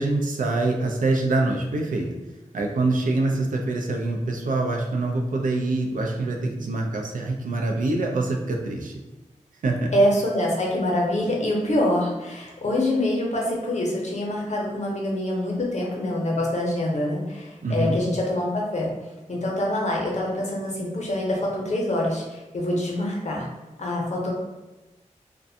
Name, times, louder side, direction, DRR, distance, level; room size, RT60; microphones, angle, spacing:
voice 1, 0.0-2.1 2.5-8.9 9.6-9.9 17.6-18.0, right 2 dB, 90° right, 1 dB, 0.4 m, -25 dB
voice 2, 9.9-18.9 19.3-23.5 23.8-24.3, left 1 dB, 60° left, -3 dB, 0.7 m, -25 dB
2.5 x 2.1 x 2.6 m, 1.1 s
wide cardioid pair, 55°, 13 cm